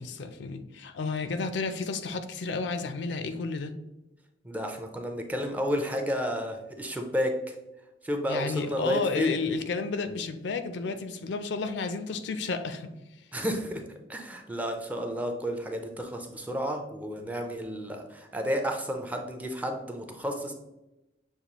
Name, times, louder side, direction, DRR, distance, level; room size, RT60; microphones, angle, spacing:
voice 1, 0.0-3.7 8.3-12.9, left 4 dB, 65° left, 0.4 m, -31 dB
voice 2, 4.4-7.6 8.0-9.4 13.3-13.8 14.1-20.5, equal, 10° right, 0.4 m, -31 dB
6.6 x 2.3 x 2.9 m
head